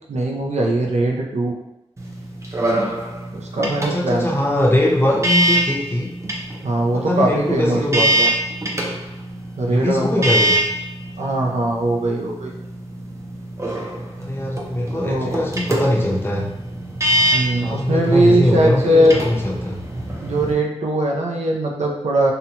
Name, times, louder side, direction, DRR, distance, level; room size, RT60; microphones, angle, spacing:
voice 1, 0.1-1.5 3.3-4.3 5.1-5.2 6.6-8.3 9.6-10.3 11.2-12.5 14.9-15.4 17.3-19.2 20.2-22.3, right 1 dB, 80° right, 0 dB, 0.5 m, -20 dB
sound 1, 2.0-20.5, right 1 dB, 25° right, 0.5 m, -25 dB
voice 2, 3.9-6.1 6.9-8.1 9.7-10.6 14.2-16.5 17.6-19.8, left 1 dB, 20° left, -3 dB, 0.6 m, -21 dB
2.7 x 2.1 x 2.7 m, 0.87 s
wide cardioid pair, 95°, 11 cm